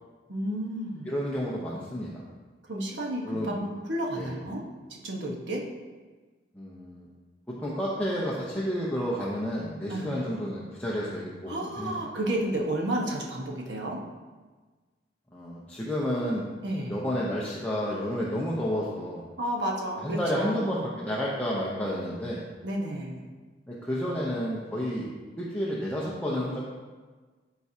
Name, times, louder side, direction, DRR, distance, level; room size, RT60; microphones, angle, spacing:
voice 1, 0.3-1.2 2.7-4.6 4.9-5.6 9.9-10.2 11.5-14.0 16.6-17.0 19.4-20.7 22.6-23.3, right 1 dB, 75° right, -1 dB, 1.2 m, -31 dB
voice 2, 1.1-2.1 3.2-3.5 4.2-4.3 6.5-7.1 7.6-12.0 15.3-16.6 16.9-19.2 20.0-22.4 23.7-25.1 25.4-26.7, equal, 10° left, -6 dB, 0.8 m, -31 dB
13.0 x 4.6 x 2.8 m, 1.3 s
head